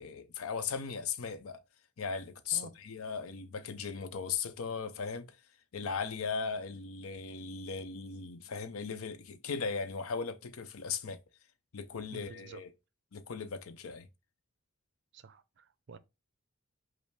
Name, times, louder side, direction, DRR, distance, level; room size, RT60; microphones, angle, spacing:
voice 1, 0.0-1.6 2.0-5.4 5.7-11.2 11.7-12.7 13.1-14.1, left 5 dB, 90° left, 0.6 m, -37 dB
voice 2, 12.1-12.6 15.1-16.0, right 4 dB, 55° right, 0.5 m, -50 dB
5.3 x 2.0 x 4.7 m
head